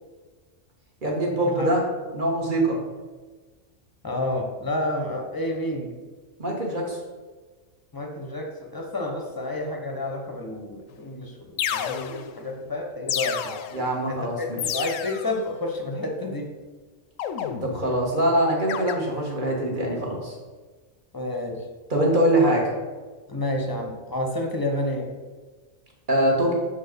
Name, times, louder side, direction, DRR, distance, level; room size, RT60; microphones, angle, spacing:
voice 1, 1.0-1.8 2.1-2.8 6.4-7.0 13.7-14.6 17.6-20.4 21.9-22.7 26.1-26.5, right 1 dB, 40° right, -1 dB, 1.7 m, -23 dB
voice 2, 4.0-5.9 7.9-13.6 14.1-16.5 21.1-21.6 23.3-25.1, left 1 dB, 20° left, 2 dB, 0.8 m, -30 dB
sound 1, 10.9-11.0 11.6-12.4 13.1-13.9 14.6-15.4 17.2-18.0 18.7-18.9, left 9 dB, 75° left, 0.9 m, -30 dB
7.2 x 4.6 x 5.2 m, 1.3 s
omnidirectional pair, 1.4 m